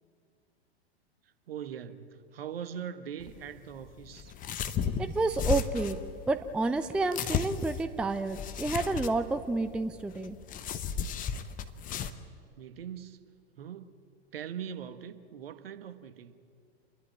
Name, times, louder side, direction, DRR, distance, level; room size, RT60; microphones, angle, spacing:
voice 1, 1.5-4.3 12.6-13.2 13.6-13.9 14.3-16.3, right 8 dB, 65° right, 10 dB, 1.3 m, -41 dB
sound 1, 3.2-12.1, left 7 dB, 25° left, 1.0 m, -35 dB
voice 2, 5.0-6.0 6.3-10.4, right 3 dB, 5° right, 11 dB, 0.4 m, -30 dB
29.0 x 11.0 x 8.8 m, 2.3 s
figure-of-eight pair, 95°, 32 cm